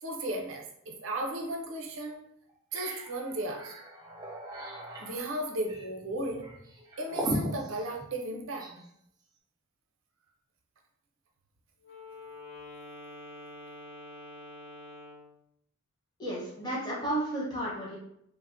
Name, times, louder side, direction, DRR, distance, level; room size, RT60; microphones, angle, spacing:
voice 1, 0.0-2.2 2.7-3.7 5.0-6.5 7.0-8.7, right 1 dB, 75° right, 2 dB, 0.5 m, -35 dB
sound 1, 1.5-1.6 2.1-2.2 2.5-8.9, equal, 20° right, 0.3 m, -39 dB
Wind instrument woodwind instrument, 11.8-15.4, left 2 dB, 70° left, 1.4 m, -46 dB
voice 2, 16.2-17.9, right 1 dB, 20° left, -6 dB, 0.7 m, -32 dB
3.1 x 2.1 x 2.5 m, 0.75 s
head